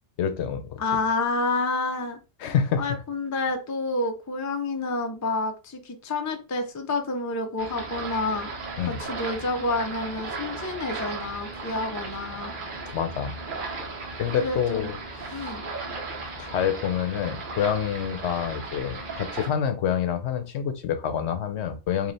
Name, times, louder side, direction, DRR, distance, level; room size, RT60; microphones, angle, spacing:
voice 1, 0.2-0.8 2.4-3.0 8.8-9.0 12.9-13.3 14.2-15.6 16.4-22.1, left 8 dB, 75° left, 0.9 m, -27 dB
voice 2, 0.8-2.2 2.8-8.5 8.8-12.6 14.3-14.9 15.3-15.6, left 3 dB, 25° left, 0.4 m, -29 dB
sound 1, 7.6-19.5, right 3 dB, 50° right, 1.0 m, -36 dB
3.2 x 2.7 x 3.9 m
omnidirectional pair, 1.2 m